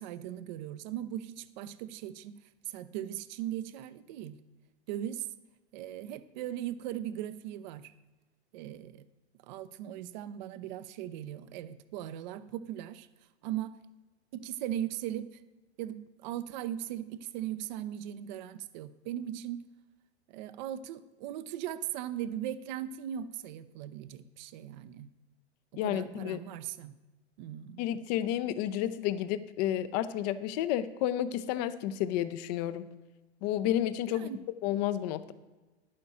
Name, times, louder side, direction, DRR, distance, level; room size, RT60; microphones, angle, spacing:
voice 1, 0.0-4.4 4.9-5.3 5.7-7.9 8.5-9.0 9.4-13.1 13.4-13.8 14.3-15.4 15.8-19.6 20.3-25.1 25.8-26.9 27.4-27.8 34.1-34.4, right 11 dB, 40° right, 14 dB, 0.7 m, -38 dB
voice 2, 25.8-26.4 27.8-32.9 33.4-34.3 34.6-35.3, left 11 dB, 40° left, 13 dB, 0.7 m, -31 dB
11.5 x 8.6 x 4.3 m, 1.2 s
figure-of-eight pair, 90°, 33 cm